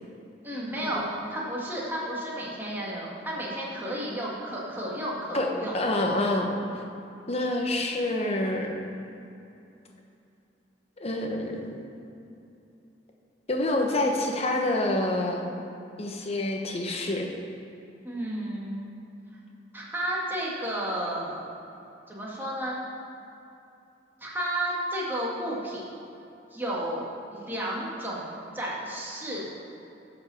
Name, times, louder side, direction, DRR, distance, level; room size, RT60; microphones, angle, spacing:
voice 1, 0.4-5.7 18.0-18.9 19.7-21.6 22.1-22.8 24.2-25.8 26.5-29.5, right 1 dB, 10° right, -5 dB, 1.9 m, -32 dB
voice 2, 5.7-6.5 7.3-8.7 11.0-11.9 13.5-15.5 16.0-17.3, left 1 dB, 35° left, 2 dB, 1.1 m, -27 dB
11.0 x 5.3 x 7.1 m, 2.8 s
head